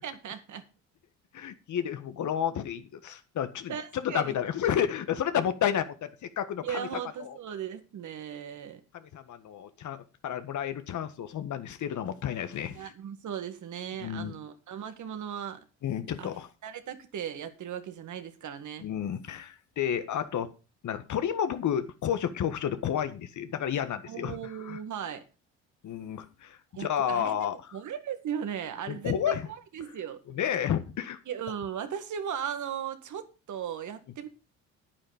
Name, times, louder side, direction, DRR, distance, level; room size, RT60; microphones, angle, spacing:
voice 1, 0.0-0.7 3.7-4.3 6.6-8.8 12.7-15.6 16.2-16.3 16.6-18.8 24.1-25.2 26.7-27.5 27.7-29.4 29.7-30.2 31.3-34.3, right 8 dB, 60° right, 1.9 m, -37 dB
voice 2, 1.3-6.8 7.2-7.4 8.9-12.9 14.0-14.3 15.8-16.5 18.8-20.5 20.8-24.4 24.6-24.8 25.8-27.5 28.9-29.5 30.3-31.2, left 9 dB, 55° left, 1.6 m, -31 dB
9.7 x 9.3 x 5.1 m
supercardioid pair, 70°, 34 cm